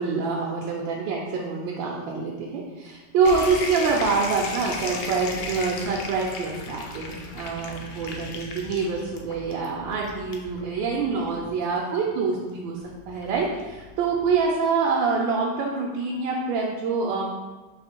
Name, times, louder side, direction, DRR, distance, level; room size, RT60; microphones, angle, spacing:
voice 1, 0.0-17.3, right 4 dB, 85° right, -2 dB, 1.3 m, -26 dB
sound 1, 3.2-14.5, left 3 dB, 70° left, 1.1 m, -37 dB
4.1 x 2.6 x 4.2 m, 1.3 s
omnidirectional pair, 2.0 m